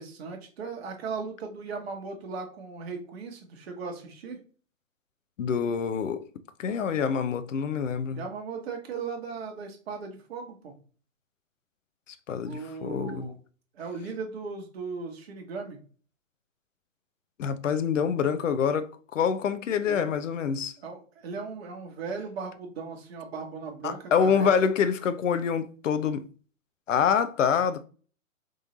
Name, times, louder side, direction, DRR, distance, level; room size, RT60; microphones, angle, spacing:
voice 1, 0.0-4.4 8.1-10.7 12.4-13.4 13.7-15.8 19.8-20.0 20.8-24.5, right 4 dB, 45° right, 1.4 m, -37 dB
voice 2, 5.4-6.3 6.6-8.2 12.1-13.3 17.4-20.7 23.8-26.3 26.9-27.8, left 7 dB, 60° left, 0.7 m, -26 dB
3.8 x 3.2 x 3.9 m
figure-of-eight pair, 130°, 42 cm